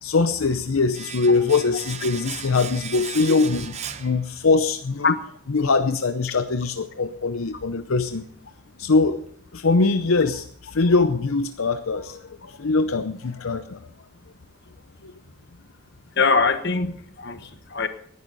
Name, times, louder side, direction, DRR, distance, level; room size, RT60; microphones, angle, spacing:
voice 1, 0.0-5.1 5.5-8.2 8.8-9.2 9.5-13.9 15.0-15.1, left 3 dB, 75° left, 9 dB, 0.7 m, -22 dB
Domestic sounds home sounds, 0.9-4.8 5.0-5.2, right 7 dB, 30° right, 0.7 m, -37 dB
voice 2, 16.2-17.9, left 4 dB, 55° left, 9 dB, 1.2 m, -22 dB
19.0 x 11.0 x 4.1 m, 0.63 s
head